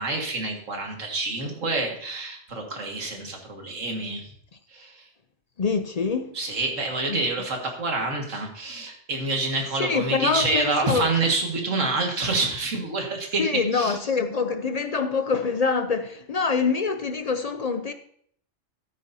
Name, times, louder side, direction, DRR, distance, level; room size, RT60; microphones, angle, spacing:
voice 1, 0.0-4.2 4.7-5.0 6.3-13.4 13.7-14.0, right 3 dB, 90° right, 2.2 m, -27 dB
voice 2, 5.6-6.3 7.1-7.2 9.8-11.1 13.4-17.9, left 5 dB, 55° left, 0.4 m, -25 dB
12.5 x 9.4 x 2.7 m
omnidirectional pair, 1.3 m